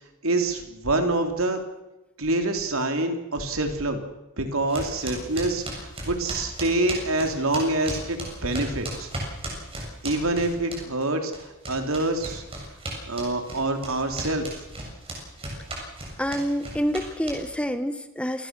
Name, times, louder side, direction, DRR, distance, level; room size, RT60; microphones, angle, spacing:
voice 1, 0.2-1.6 2.2-4.0 4.4-9.1 10.0-12.4 13.1-14.6, right 2 dB, 70° right, 5 dB, 3.7 m, -26 dB
sound 1, 4.7-11.1 11.3-17.7, right 1 dB, 25° right, 7.4 m, -35 dB
voice 2, 16.2-18.5, equal, 5° left, 10 dB, 1.3 m, -27 dB
28.0 x 20.0 x 6.4 m, 0.99 s
head